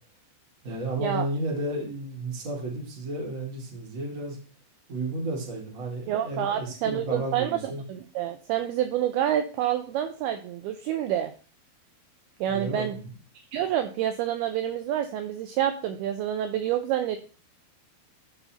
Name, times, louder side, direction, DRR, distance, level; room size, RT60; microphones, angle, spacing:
voice 1, 0.6-4.4 4.9-7.8 12.5-13.1, right 1 dB, 30° right, -1 dB, 1.6 m, -32 dB
voice 2, 6.1-7.6 7.9-11.3 12.4-13.0 13.5-17.2, right 11 dB, 85° right, 7 dB, 2.2 m, -28 dB
14.0 x 5.5 x 2.9 m, 0.37 s
omnidirectional pair, 5.1 m